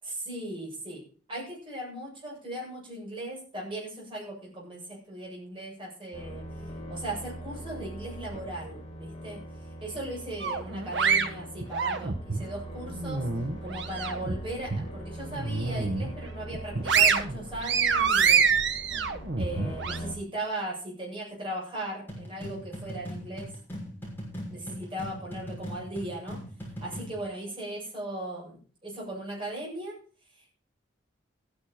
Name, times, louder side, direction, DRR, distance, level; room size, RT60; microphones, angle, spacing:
voice 1, 0.0-1.0 1.3-6.4 6.9-9.4 9.8-13.2 13.6-18.5 19.4-23.5 24.5-26.4 26.8-30.0, right 1 dB, 25° right, -4 dB, 7.9 m, -38 dB
sound 1, 6.1-20.1, right 1 dB, 30° left, 3.9 m, -41 dB
sound 2, 10.4-12.4 12.9-14.3 14.7-14.9 15.3-16.1 16.5-20.0, right 6 dB, 65° right, 1.4 m, -26 dB
sound 3, 22.1-27.2, equal, 10° left, 6.4 m, -39 dB
15.0 x 10.0 x 4.4 m, 0.40 s
head